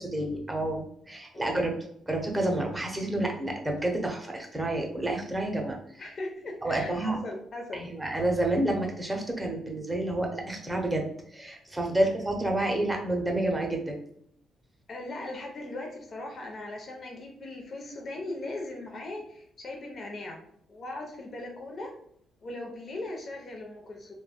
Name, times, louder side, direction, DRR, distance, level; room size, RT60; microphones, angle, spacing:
voice 1, 0.0-1.8 2.1-5.8 6.6-7.2 7.7-11.0 11.3-14.0, right 1 dB, 10° right, 1 dB, 0.7 m, -29 dB
voice 2, 1.3-1.7 6.0-7.8 14.9-20.4 20.7-21.9 22.4-24.1, left 2 dB, 45° left, 1 dB, 0.5 m, -39 dB
3.2 x 2.1 x 2.2 m, 0.67 s
cardioid pair, 90°, 0 cm